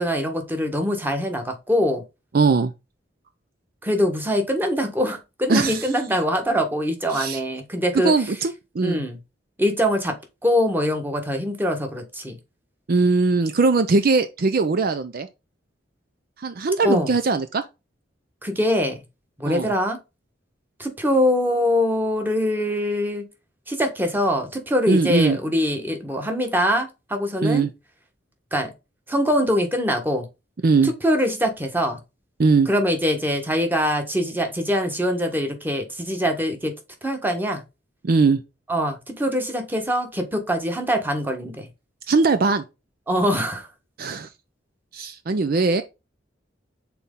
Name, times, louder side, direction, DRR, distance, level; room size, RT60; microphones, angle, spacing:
voice 1, 0.0-2.0 3.8-8.1 8.8-9.2 9.6-10.1 10.4-12.4 16.8-17.1 18.4-19.0 19.4-20.0 20.8-23.2 23.7-27.7 28.5-28.7 29.1-30.3 30.8-32.0 32.7-36.7 37.0-37.6 38.7-41.7 43.1-43.7, equal, 10° right, 1.3 m, -23 dB
voice 2, 2.3-2.7 5.5-5.9 7.1-7.4 8.0-9.0 12.9-15.3 16.4-17.6 19.5-19.7 24.9-25.4 27.4-27.7 30.6-30.9 32.4-32.7 38.0-38.4 42.1-42.6 44.0-44.3 44.9-45.8, right 4 dB, 50° right, 0.5 m, -20 dB
6.0 x 4.2 x 3.7 m
head